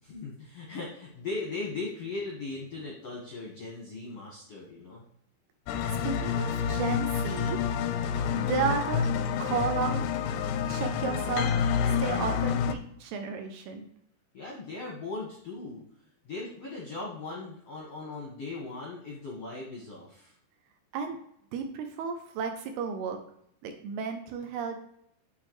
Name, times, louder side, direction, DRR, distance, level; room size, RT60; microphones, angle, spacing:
voice 1, 0.0-5.0 14.3-15.8 16.2-20.4, left 3 dB, 65° left, -4 dB, 1.5 m, -38 dB
sound 1, 5.7-12.7, left 7 dB, 90° left, 2.8 m, -28 dB
voice 2, 5.9-7.6 8.3-9.1 9.4-10.0 10.7-11.5 11.9-13.9 20.9-21.2 21.5-23.2 23.6-24.8, right 6 dB, 80° right, 5 dB, 2.5 m, -33 dB
8.7 x 4.0 x 3.1 m, 0.73 s
omnidirectional pair, 4.9 m